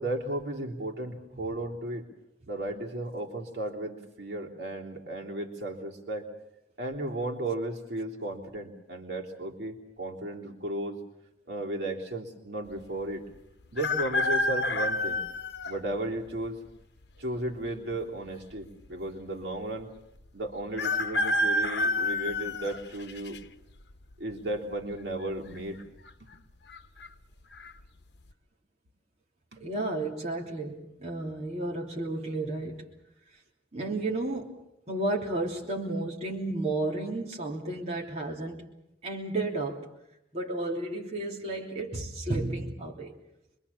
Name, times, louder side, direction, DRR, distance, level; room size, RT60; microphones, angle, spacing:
voice 1, 0.0-2.1 2.5-6.3 6.8-11.0 11.5-13.2 13.7-15.2 15.7-16.6 17.2-19.9 20.3-23.4 24.2-25.8 26.2-26.3 29.5-29.7, right 1 dB, 70° right, 0 dB, 3.5 m, -34 dB
sound 1, 13.8-15.8 16.5-16.6 17.7-18.3 18.6-18.7 18.9-19.0 20.8-23.4 23.9-24.3 25.4-25.8 26.1-26.2 26.7-27.1 27.5-27.7, left 2 dB, 70° left, 1.1 m, -29 dB
voice 2, 29.6-32.8 33.7-34.5 34.9-38.6 39.0-39.9 40.3-43.2, right 2 dB, 35° right, -1 dB, 3.1 m, -32 dB
26.0 x 23.5 x 7.2 m, 0.85 s
head